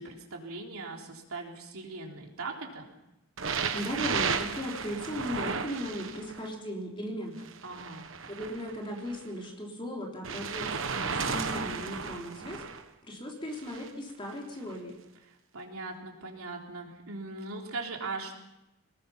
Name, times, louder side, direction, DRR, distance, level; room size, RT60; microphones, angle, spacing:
voice 1, 0.0-2.9 7.6-8.1 15.5-18.4, right 3 dB, 85° right, 1 dB, 3.6 m, -39 dB
sound 1, 3.4-6.5 7.4-9.2 10.2-12.8 13.5-13.9 14.7-14.8, right 5 dB, 65° right, 1.3 m, -34 dB
voice 2, 3.7-7.5 8.3-12.6 13.0-15.0, equal, 25° left, 0 dB, 3.6 m, -37 dB
24.0 x 19.5 x 5.8 m, 0.94 s
head